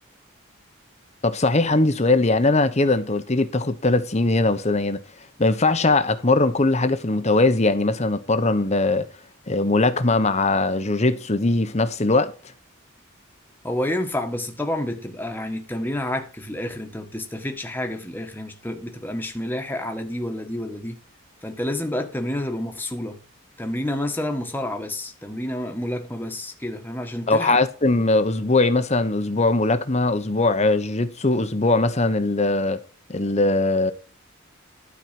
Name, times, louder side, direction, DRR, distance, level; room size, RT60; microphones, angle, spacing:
voice 1, 1.2-5.0 5.4-9.1 9.5-12.3 27.3-32.8 33.1-33.9, left 2 dB, 30° left, 1.0 m, -20 dB
voice 2, 13.6-21.0 21.4-23.2 23.6-27.6, left 1 dB, 10° left, 1.5 m, -29 dB
12.0 x 4.8 x 7.6 m
head